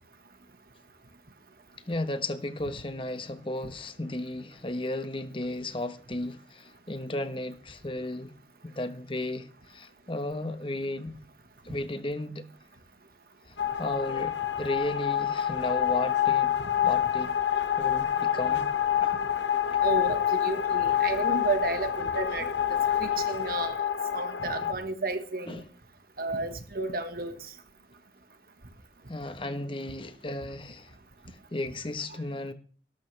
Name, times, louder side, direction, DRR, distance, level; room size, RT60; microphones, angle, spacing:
voice 1, 1.9-8.3 8.6-11.1 11.6-12.5 13.4-16.5 16.8-17.3 17.8-18.7 19.0-19.2 24.6-24.7 25.5-25.6 29.1-30.9 31.3-32.5, left 1 dB, 30° left, 1.2 m, -34 dB
sound 1, 13.6-24.7, left 10 dB, 85° left, 1.5 m, -27 dB
voice 2, 19.8-23.8 24.1-25.6 26.2-27.5, right 3 dB, 55° right, 1.6 m, -32 dB
18.0 x 13.0 x 3.4 m
head